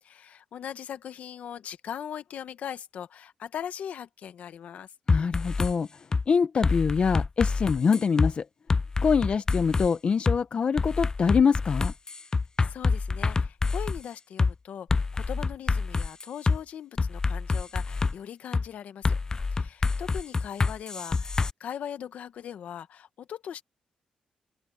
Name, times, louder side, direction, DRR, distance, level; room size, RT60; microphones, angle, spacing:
voice 1, 0.0-4.9 12.6-19.2 19.5-23.6, left 9 dB, 75° left, 1.2 m, -40 dB
voice 2, 5.1-5.9 6.3-8.5 9.0-11.9, left 6 dB, 50° left, 0.7 m, -24 dB
sound 1, 5.1-5.7 6.1-6.3 6.6-8.3 8.7-9.9 10.3-10.4 10.8-14.0 14.4-14.5 14.9-16.6 17.0-18.1 18.5-18.7 19.0-21.5, left 4 dB, 30° left, 0.4 m, -26 dB
open air
cardioid pair, 95°, 2 cm